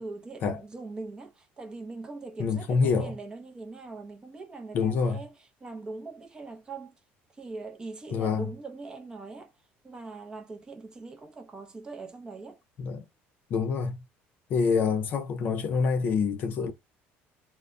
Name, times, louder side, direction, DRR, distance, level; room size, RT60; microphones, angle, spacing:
voice 1, 0.0-6.9 7.3-9.5 9.8-12.6, right 3 dB, 20° right, 0.6 m, -41 dB
voice 2, 2.4-3.1 4.7-5.2 8.1-8.5 12.8-13.0 13.5-14.0 14.5-16.7, left 5 dB, 45° left, 0.6 m, -26 dB
2.1 x 2.1 x 3.6 m
cardioid pair, 160°, 4 cm